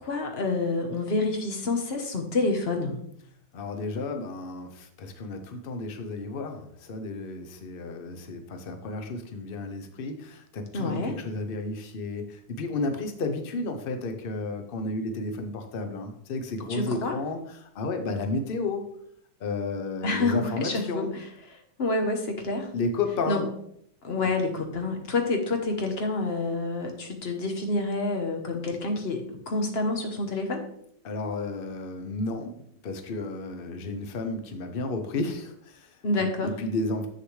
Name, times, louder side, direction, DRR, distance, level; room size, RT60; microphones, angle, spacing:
voice 1, 0.0-3.0 10.7-11.2 16.7-17.1 20.0-21.2 21.5-22.7 23.3-23.4 24.0-30.6 36.0-36.5, left 2 dB, 45° left, 4 dB, 1.0 m, -28 dB
voice 2, 3.5-18.9 19.4-21.1 22.7-23.4 31.0-36.0 36.4-37.1, left 3 dB, 90° left, 6 dB, 0.5 m, -32 dB
7.7 x 6.5 x 3.2 m, 0.71 s
omnidirectional pair, 2.0 m